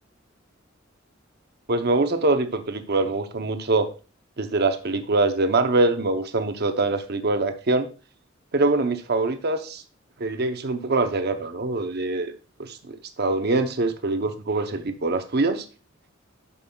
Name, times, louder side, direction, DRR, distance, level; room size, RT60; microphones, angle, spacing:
voice 1, 1.7-3.9 4.4-7.9 8.5-9.8 10.2-12.3 12.6-15.6, right 2 dB, 55° right, 8 dB, 0.8 m, -24 dB
11.0 x 5.4 x 2.3 m, 0.34 s
head